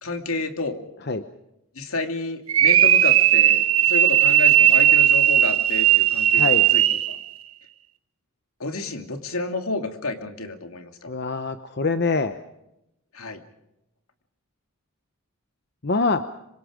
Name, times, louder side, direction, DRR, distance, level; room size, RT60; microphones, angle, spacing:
voice 1, 0.0-0.8 1.8-7.2 8.6-11.1 13.1-13.4, left 2 dB, 75° left, 6 dB, 2.6 m, -30 dB
sound 1, 2.5-7.2, right 11 dB, 70° right, 1.2 m, -17 dB
voice 2, 6.3-6.6 11.1-12.4 15.8-16.2, left 3 dB, 50° left, 10 dB, 0.9 m, -24 dB
26.0 x 25.0 x 5.1 m, 0.86 s
head